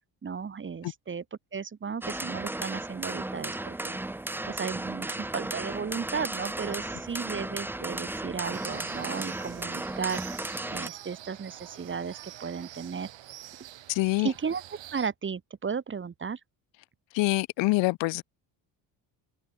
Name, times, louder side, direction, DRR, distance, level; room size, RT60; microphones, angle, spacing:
voice 1, 0.2-1.2 1.5-4.0 4.4-10.2 10.7-13.1 14.2-14.6 14.9-16.4, right 6 dB, 25° right, 1.0 m, -34 dB
sound 1, 2.0-10.9, right 2 dB, 5° right, 0.5 m, -35 dB
sound 2, 8.5-15.1, right 13 dB, 65° right, 3.3 m, -46 dB
voice 2, 13.9-14.3 17.1-18.2, left 21 dB, 65° left, 0.6 m, -25 dB
supercardioid pair, 75°, 48 cm